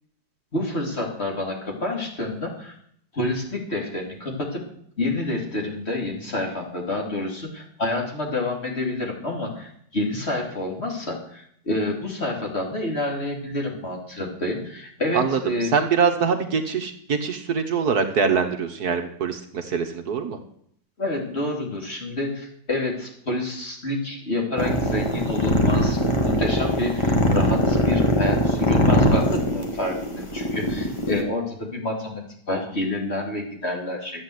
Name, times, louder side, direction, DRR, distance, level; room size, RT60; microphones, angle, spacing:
voice 1, 0.5-2.7 3.1-4.6 5.0-15.7 21.0-34.2, left 2 dB, 35° left, 0 dB, 3.2 m, -28 dB
voice 2, 15.1-20.4, right 6 dB, 60° right, 5 dB, 1.6 m, -24 dB
sound 1, 24.6-31.2, equal, 15° left, 1.8 m, -21 dB
13.0 x 8.6 x 7.9 m, 0.67 s
omnidirectional pair, 1.9 m